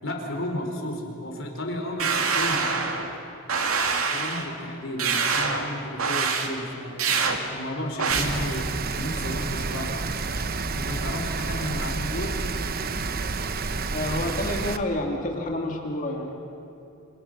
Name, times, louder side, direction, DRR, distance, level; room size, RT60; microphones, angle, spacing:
voice 1, 0.0-2.7 4.1-9.9 10.7-12.4, left 1 dB, 65° left, 2 dB, 4.5 m, -33 dB
sound 1, 2.0-3.1 3.5-4.5 5.0-5.6 6.0-6.5 7.0-7.4 8.0-8.2, right 5 dB, 90° right, 2.5 m, -25 dB
Rain, 8.1-14.8, right 4 dB, 45° right, 1.0 m, -29 dB
voice 2, 13.9-16.4, left 1 dB, 40° left, 1 dB, 2.5 m, -29 dB
29.0 x 27.0 x 6.7 m, 2.7 s
head